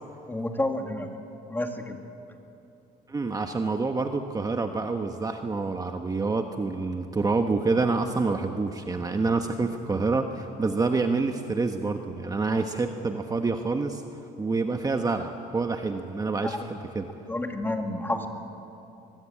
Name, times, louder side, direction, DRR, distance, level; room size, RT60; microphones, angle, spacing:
voice 1, 0.3-1.1 1.5-2.0 16.4-16.7 17.3-18.3, left 1 dB, 10° left, 4 dB, 2.4 m, -30 dB
voice 2, 3.1-14.0 14.4-17.1, right 3 dB, 20° right, 5 dB, 1.2 m, -27 dB
23.0 x 21.5 x 8.6 m, 2.8 s
cardioid pair, 110°, 17 cm